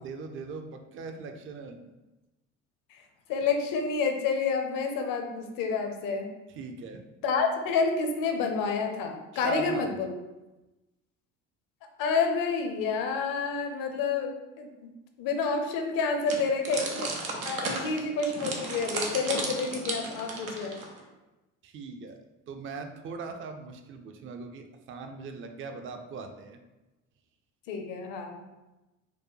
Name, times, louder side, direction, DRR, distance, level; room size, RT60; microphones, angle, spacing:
voice 1, 0.0-1.9 6.5-7.0 9.3-10.0 21.6-22.2 22.5-26.6, right 4 dB, 30° right, 6 dB, 0.5 m, -40 dB
voice 2, 3.3-6.3 7.2-10.1 12.0-14.3 14.6-14.9 15.2-17.1 17.4-20.8 27.7-28.4, left 4 dB, 55° left, 4 dB, 0.7 m, -29 dB
sound 1, 16.3-21.0, right 3 dB, 90° right, 0.6 m, -34 dB
4.5 x 2.2 x 3.1 m, 1.0 s
figure-of-eight pair, 55°, 40 cm